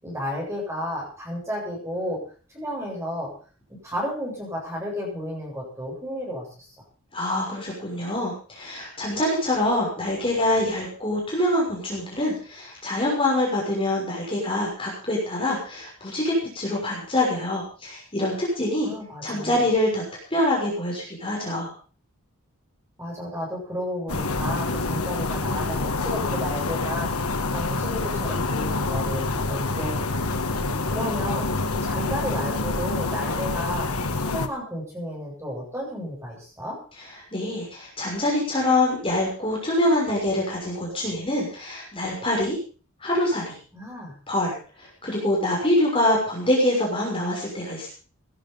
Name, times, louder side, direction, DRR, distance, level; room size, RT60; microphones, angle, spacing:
voice 1, 0.0-2.2 2.5-3.3 3.8-6.7 18.8-19.6 23.0-27.2 27.5-30.2 30.5-30.6 30.8-33.9 34.2-36.8 43.7-44.2, equal, 10° right, -2 dB, 7.8 m, -32 dB
voice 2, 7.1-18.9 19.2-20.0 20.3-21.7 37.3-42.6 43.0-43.6 44.3-44.5 44.8-47.9, left 1 dB, 25° left, -3 dB, 6.2 m, -25 dB
sound 1, 24.1-34.5, left 3 dB, 85° left, 1.6 m, -27 dB
18.0 x 11.0 x 5.5 m, 0.39 s
head